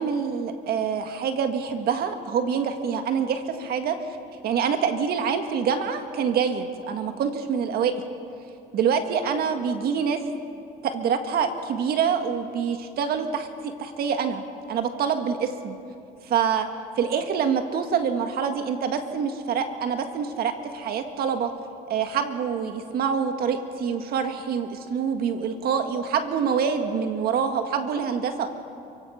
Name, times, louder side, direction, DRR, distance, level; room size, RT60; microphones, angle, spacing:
voice 1, 0.0-4.2 4.4-7.9 8.7-10.2 10.8-14.4 14.7-15.8 16.2-16.7 17.0-21.5 21.9-28.5, right 7 dB, 65° right, 6 dB, 1.8 m, -26 dB
29.5 x 16.5 x 5.8 m, 2.6 s
cardioid pair, 110°, 17 cm